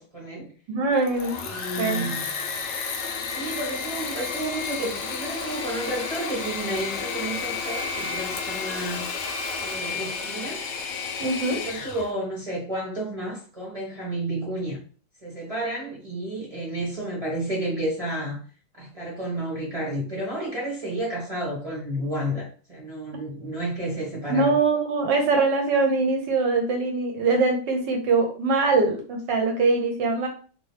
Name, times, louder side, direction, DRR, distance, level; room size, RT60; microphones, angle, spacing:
voice 1, 0.0-0.5 1.4-2.2 3.3-9.1 9.6-10.6 11.4-14.8 15.2-18.4 18.7-24.6, right 1 dB, 25° right, -5 dB, 0.9 m, -31 dB
voice 2, 0.7-1.4 1.8-2.1 11.2-11.6 24.3-30.3, right 3 dB, 70° right, 3 dB, 1.2 m, -23 dB
Engine / Mechanisms, 0.9-12.1, left 5 dB, 85° left, 0.7 m, -31 dB
3.0 x 3.0 x 3.1 m, 0.40 s
omnidirectional pair, 2.3 m